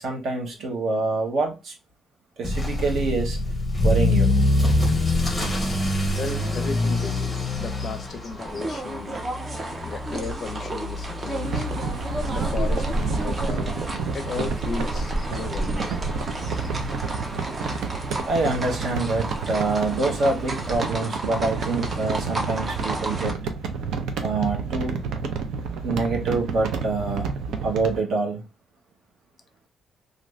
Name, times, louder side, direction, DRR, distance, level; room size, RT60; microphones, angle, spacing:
voice 1, 0.0-1.7 2.4-3.4 3.8-4.3 18.3-23.4 24.2-25.0 25.8-27.3 27.6-28.4, right 3 dB, 55° right, 0.9 m, -26 dB
Motor vehicle (road) / Accelerating revving vroom, 2.4-17.3 17.6-18.0 18.5-18.6 18.9-19.0 19.3-19.4 20.7-20.8, left 1 dB, 10° left, 0.7 m, -26 dB
voice 2, 6.1-9.2 9.8-11.7 12.3-15.9 16.8-16.9, left 4 dB, 40° left, 0.5 m, -35 dB
sound 1, 8.4-23.3, right 2 dB, 25° right, 0.5 m, -33 dB
sound 2, 11.3-28.0, right 5 dB, 80° right, 0.5 m, -30 dB
2.5 x 2.5 x 3.2 m
cardioid pair, 180°, 0 cm